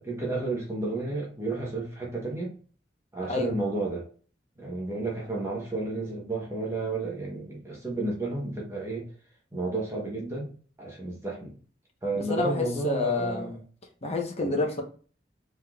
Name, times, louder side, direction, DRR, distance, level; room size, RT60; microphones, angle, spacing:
voice 1, 0.0-2.5 3.1-4.0 4.6-9.1 9.5-10.5 10.8-11.5 12.0-13.5 14.4-14.6, right 2 dB, 15° right, 1.1 m, -32 dB
voice 2, 12.1-13.6 14.0-14.8, left 3 dB, 35° left, 1.0 m, -28 dB
5.2 x 3.8 x 2.4 m
head